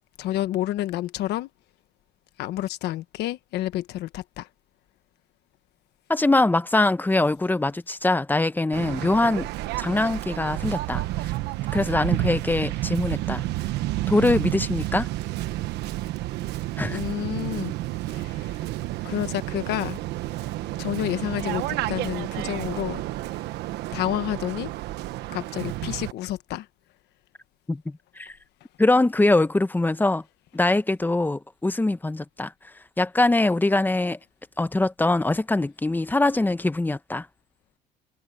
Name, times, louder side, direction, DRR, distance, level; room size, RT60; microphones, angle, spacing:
voice 1, 0.2-1.5 2.4-4.5 16.9-17.7 18.1-18.6 19.0-20.0 20.4-20.5 20.8-23.0 23.3-23.4 23.9-24.7 25.3-26.7, left 14 dB, 80° left, 1.3 m, -29 dB
voice 2, 6.1-9.5 9.8-11.0 11.7-13.5 14.1-15.1 16.8-17.0 27.7-28.3 28.8-30.2 30.5-32.5 33.0-34.2 34.6-37.3, left 2 dB, 10° left, 0.9 m, -23 dB
Waves surf, 8.7-26.1, right 16 dB, 85° right, 1.2 m, -30 dB
cardioid pair, 110°, 17 cm